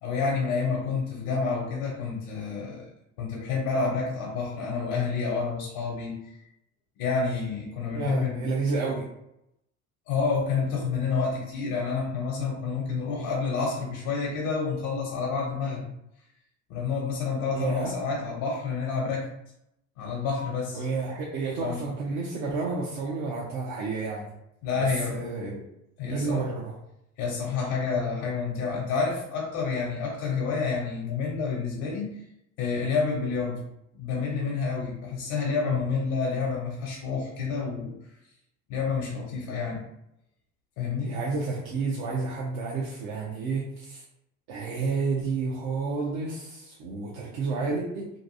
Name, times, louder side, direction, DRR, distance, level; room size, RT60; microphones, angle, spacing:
voice 1, 0.0-2.9 3.2-6.3 7.0-8.5 10.1-15.8 16.7-19.3 20.0-20.8 21.6-21.8 24.6-25.3 26.0-26.4 27.2-32.2 32.6-33.6 33.9-37.9 38.7-39.8 40.8-41.1, left 5 dB, 70° left, -2 dB, 0.8 m, -29 dB
voice 2, 7.9-9.0 17.5-17.9 20.7-24.3 24.8-25.7 26.1-26.8 41.0-44.0 44.5-48.1, right 4 dB, 65° right, -4 dB, 0.7 m, -30 dB
2.9 x 2.6 x 2.6 m, 0.81 s
hypercardioid pair, 65°, 40 cm